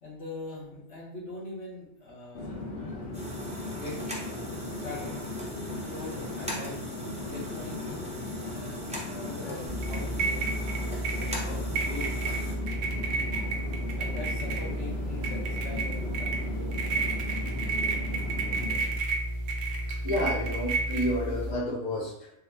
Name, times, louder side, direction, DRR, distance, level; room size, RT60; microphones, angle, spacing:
voice 1, 0.0-2.7 3.7-5.2 5.5-6.8 7.2-8.8 9.2-10.5 11.1-12.1 14.0-16.9, left 2 dB, 90° left, -5 dB, 1.5 m, -42 dB
Conversation / Chatter / Fixed-wing aircraft airplane, 2.3-19.0, left 2 dB, 70° left, 0.9 m, -38 dB
sound 1, 3.1-12.5, equal, 10° right, 0.4 m, -41 dB
sound 2, 9.7-21.5, right 2 dB, 75° right, 0.9 m, -31 dB
voice 2, 19.9-22.3, left 1 dB, 45° left, -3 dB, 0.9 m, -31 dB
3.5 x 2.1 x 3.3 m, 0.80 s
omnidirectional pair, 1.2 m